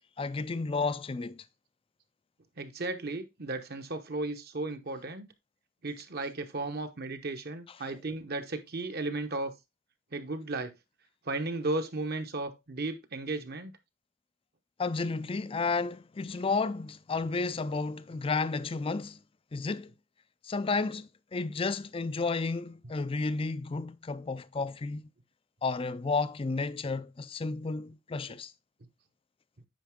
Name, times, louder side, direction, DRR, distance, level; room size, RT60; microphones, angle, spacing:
voice 1, 0.2-1.4 14.8-19.2 19.5-19.9 20.4-25.0 25.6-28.5, left 4 dB, 25° left, 0.4 m, -32 dB
voice 2, 2.6-5.3 5.8-9.5 10.1-10.7 11.2-13.7, right 2 dB, 45° right, 1.0 m, -35 dB
9.1 x 5.3 x 3.6 m
head